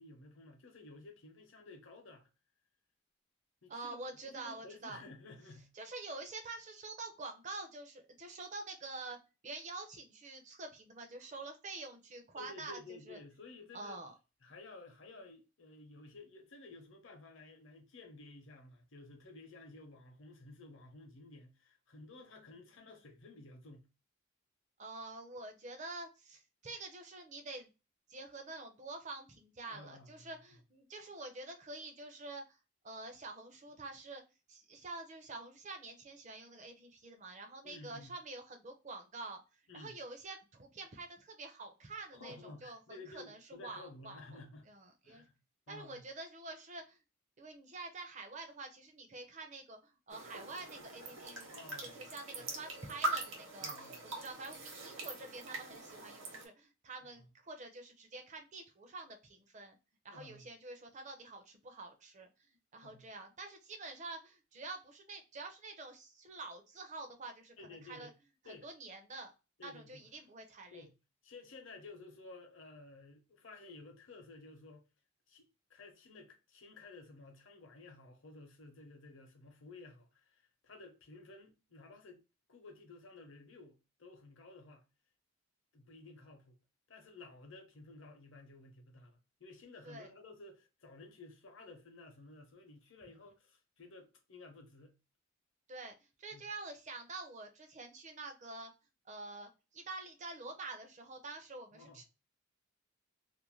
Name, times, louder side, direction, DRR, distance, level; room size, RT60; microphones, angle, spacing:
voice 1, 0.0-2.3 3.6-5.7 12.3-14.0 14.4-23.9 29.7-30.3 37.6-38.1 39.7-40.0 42.1-44.7 45.0-45.4 45.7-46.0 51.5-52.0 52.4-52.5 53.6-54.0 57.2-57.3 60.1-60.4 62.8-63.1 67.6-68.1 68.4-68.7 69.6-70.1 70.7-70.9 71.2-74.8 75.3-82.2 82.5-84.8 85.7-86.6 86.9-94.9 96.3-96.4 101.7-102.0, left 3 dB, 65° left, 0.7 m, -54 dB
voice 2, 3.7-5.0 5.7-9.2 9.4-13.2 13.7-14.1 22.2-22.6 24.8-27.7 28.1-32.6 32.8-34.2 34.5-39.4 39.7-44.2 44.7-45.2 45.7-47.0 47.4-51.5 51.8-53.7 54.1-59.8 60.0-62.3 62.7-67.5 67.8-68.1 68.5-69.3 69.6-70.8 89.8-90.1 95.7-95.9 96.2-98.7 99.1-102.0, right 3 dB, 35° right, 0.5 m, -47 dB
sound 1, 50.1-56.5, right 2 dB, 65° right, 0.9 m, -42 dB
2.5 x 2.1 x 3.0 m
head